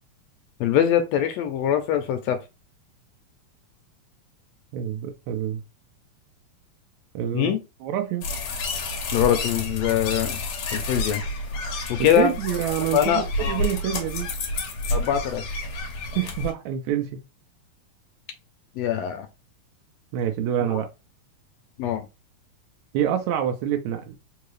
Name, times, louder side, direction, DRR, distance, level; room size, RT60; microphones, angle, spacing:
voice 1, 0.6-2.4 7.3-7.6 9.1-10.4 10.7-11.2 11.9-12.3 12.9-13.6 14.9-15.4 18.8-19.3 21.8-22.0, left 10 dB, 80° left, 1.6 m, -23 dB
voice 2, 4.7-5.6 7.2-7.5 7.8-8.3 12.0-14.3 16.2-17.2 20.1-20.9 22.9-24.2, right 10 dB, 80° right, 1.8 m, -26 dB
sound 1, 8.2-16.5, left 2 dB, 60° left, 1.5 m, -30 dB
4.6 x 2.7 x 3.1 m
omnidirectional pair, 3.3 m